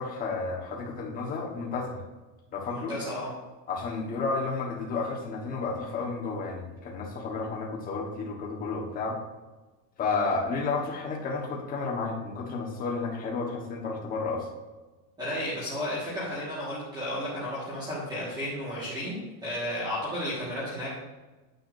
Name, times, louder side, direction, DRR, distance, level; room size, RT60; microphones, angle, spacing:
voice 1, 0.0-2.0 2.5-2.9 3.7-9.2 10.0-14.5, left 4 dB, 20° left, -2 dB, 1.2 m, -31 dB
voice 2, 2.7-3.3 15.2-21.0, left 1 dB, 10° right, -9 dB, 1.5 m, -33 dB
9.3 x 8.4 x 2.6 m, 1.2 s
supercardioid pair, 180°, 47 cm